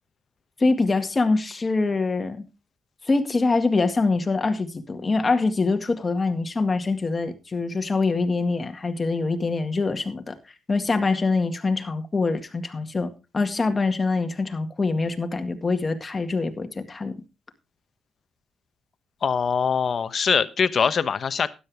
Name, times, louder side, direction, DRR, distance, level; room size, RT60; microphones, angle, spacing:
voice 1, 0.6-2.4 3.0-10.4 10.7-17.1, left 3 dB, 25° left, 6 dB, 1.9 m, -24 dB
voice 2, 19.2-21.5, left 6 dB, 45° left, 13 dB, 1.0 m, -23 dB
12.5 x 10.0 x 3.5 m, 0.28 s
cardioid pair, 90°, 0 cm